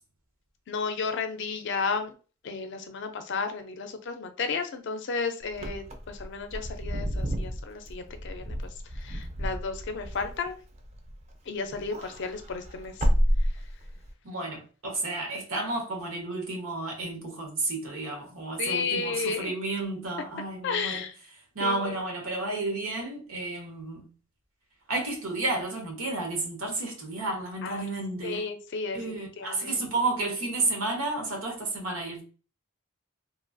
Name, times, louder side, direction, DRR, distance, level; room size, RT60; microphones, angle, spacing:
voice 1, 0.7-2.1 2.4-8.6 8.9-10.6 11.5-12.9 18.6-19.5 20.6-21.1 21.6-22.0 27.6-27.9 28.2-29.0 29.4-29.8, left 4 dB, 60° left, 0.4 m, -33 dB
Wind / Car, 5.5-11.3 11.7-14.1, equal, 30° right, 0.4 m, -30 dB
voice 2, 14.2-21.1 21.5-24.1 24.9-28.5 28.9-32.2, right 2 dB, 90° right, 1.0 m, -31 dB
3.0 x 2.3 x 2.5 m
head